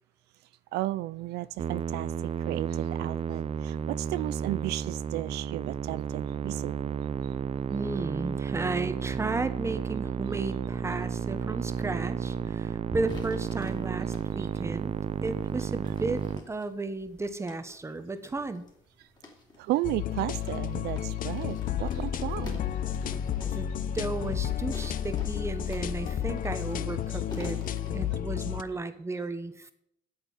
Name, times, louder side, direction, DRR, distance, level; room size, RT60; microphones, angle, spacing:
voice 1, 0.7-2.1 2.5-6.7 19.6-22.6, right 17 dB, 80° right, 17 dB, 0.4 m, -33 dB
Musical instrument, 1.6-16.4, right 7 dB, 35° right, 0.6 m, -32 dB
voice 2, 7.7-14.9 15.2-16.2 16.5-18.6 23.5-23.7 23.9-27.6 27.9-29.7, right 3 dB, 15° right, 10 dB, 1.3 m, -34 dB
sound 1, 13.0-14.5 15.2-28.2, left 2 dB, 25° left, 3.2 m, -48 dB
sound 2, 19.8-28.6, left 10 dB, 55° left, 0.7 m, -32 dB
8.6 x 8.0 x 9.2 m, 0.73 s
cardioid pair, 110°, 17 cm